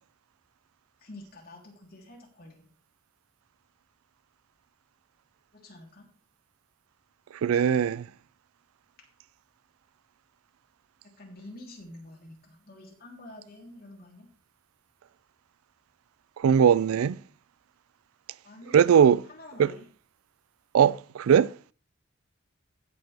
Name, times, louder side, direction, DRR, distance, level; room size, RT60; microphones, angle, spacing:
voice 1, 1.0-2.7 5.5-6.1 11.0-14.3 18.4-18.9 19.3-19.8, left 1 dB, 45° left, 3.3 m, -48 dB
voice 2, 7.4-8.1 16.4-17.2 18.7-19.2 19.6-19.7 20.7-21.5, right 8 dB, 90° right, 0.4 m, -20 dB
16.0 x 6.6 x 3.4 m
head